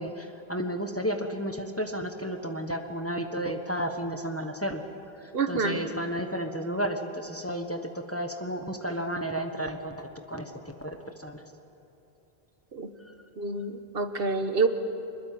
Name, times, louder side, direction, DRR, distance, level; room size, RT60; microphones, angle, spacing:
voice 1, 0.0-4.8 5.5-10.5 10.8-11.4, equal, 15° left, 5 dB, 1.3 m, -32 dB
voice 2, 5.3-5.8 12.7-12.9 13.4-14.7, right 4 dB, 65° right, 8 dB, 1.4 m, -27 dB
24.0 x 21.5 x 7.7 m, 2.9 s
omnidirectional pair, 1.0 m